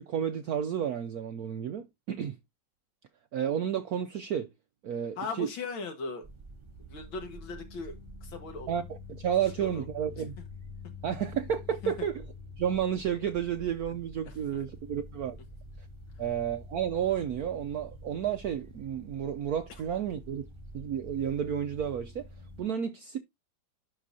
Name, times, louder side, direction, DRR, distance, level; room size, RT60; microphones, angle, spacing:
voice 1, 0.0-2.4 3.3-4.5 4.8-5.5 8.7-10.4 11.0-12.2 12.6-15.4 16.2-20.4 20.7-22.2 22.6-23.2, right 9 dB, 75° right, 0.8 m, -31 dB
voice 2, 5.2-6.3 6.8-8.7 9.6-9.8 10.2-10.3 11.8-12.1 14.3-14.4, left 4 dB, 75° left, 2.4 m, -38 dB
sound 1, 6.2-22.6, left 2 dB, 25° right, 0.6 m, -47 dB
11.5 x 3.9 x 2.7 m
omnidirectional pair, 2.2 m